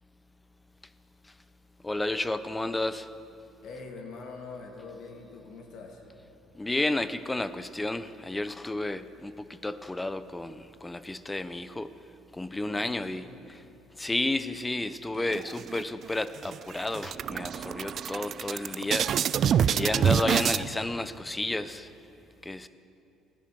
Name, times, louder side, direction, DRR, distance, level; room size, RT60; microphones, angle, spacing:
voice 1, 1.8-3.1 6.5-11.9 12.3-13.6 14.0-19.1 19.7-21.9 22.4-22.7, left 2 dB, 15° left, 13 dB, 0.7 m, -32 dB
voice 2, 3.6-6.0 12.6-13.6, left 4 dB, 65° left, 2 dB, 2.1 m, -44 dB
sound 1, 15.3-16.1 16.4-16.6 16.9-20.6, right 8 dB, 55° right, 0.4 m, -26 dB
14.5 x 10.5 x 7.0 m, 2.8 s
supercardioid pair, 70°, 0 cm